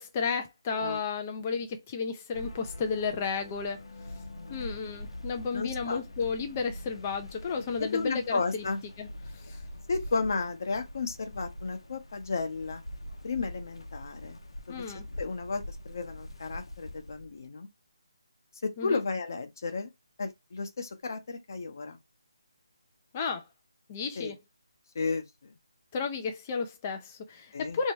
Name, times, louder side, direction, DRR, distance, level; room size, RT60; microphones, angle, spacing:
voice 1, 0.0-3.8 4.5-8.6 9.0-9.1 9.3-9.6 14.7-15.1 18.8-19.0 23.1-23.4 23.9-24.4 25.9-27.9, left 5 dB, 15° left, 0.3 m, -33 dB
sound 1, 2.3-17.5, left 1 dB, 85° left, 0.8 m, -44 dB
voice 2, 5.5-6.0 7.8-8.8 9.9-12.8 13.2-14.4 14.7-14.8 15.2-17.7 18.6-19.9 20.2-22.0 24.2-24.3 24.9-25.6 27.5-27.8, left 4 dB, 40° left, 0.8 m, -33 dB
3.3 x 2.7 x 2.9 m
hypercardioid pair, 175°, 3 cm